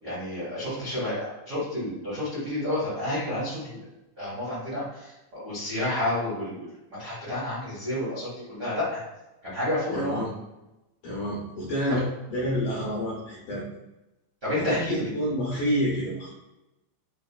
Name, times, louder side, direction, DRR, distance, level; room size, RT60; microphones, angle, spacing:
voice 1, 0.0-3.9 4.2-9.0 9.4-10.2 11.9-12.0 14.4-14.9, left 1 dB, 90° right, -9 dB, 0.8 m, -30 dB
voice 2, 9.9-10.3 11.0-12.0 12.3-13.7 14.5-16.3, equal, 80° left, -5 dB, 1.8 m, -28 dB
6.1 x 2.2 x 2.3 m, 0.96 s
omnidirectional pair, 4.5 m